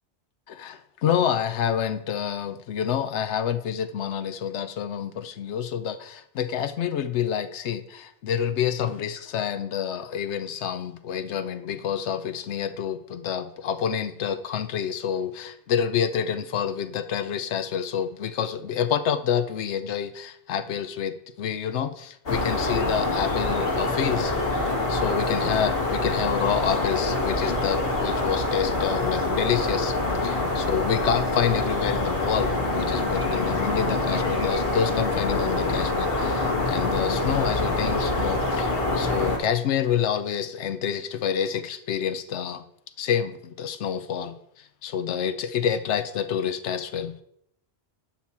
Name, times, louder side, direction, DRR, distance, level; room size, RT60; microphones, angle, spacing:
voice 1, 0.5-24.3 24.7-30.0 30.2-42.6 43.0-47.2, left 8 dB, 80° left, 11 dB, 0.9 m, -28 dB
sound 1, 22.3-39.4, left 2 dB, 55° left, 1.8 m, -25 dB
8.8 x 5.9 x 4.2 m, 0.72 s
omnidirectional pair, 1.1 m